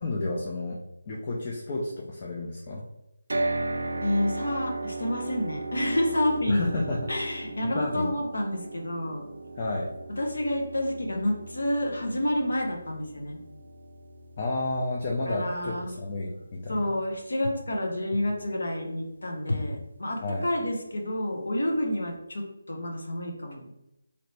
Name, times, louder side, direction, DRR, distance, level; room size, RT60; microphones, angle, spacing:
voice 1, 0.0-0.8 1.1-2.8 6.5-7.1 7.6-8.1 9.6-9.9 14.4-17.0 20.2-20.5, left 2 dB, 25° left, -2 dB, 0.4 m, -31 dB
sound 1, 3.3-17.4, right 2 dB, 75° right, 0.4 m, -37 dB
voice 2, 4.0-6.6 7.1-9.2 10.2-13.4 15.3-15.9 16.7-23.7, left 1 dB, 75° left, 1 dB, 0.9 m, -29 dB
2.9 x 2.7 x 3.2 m, 0.89 s
figure-of-eight pair, 175°, 0 cm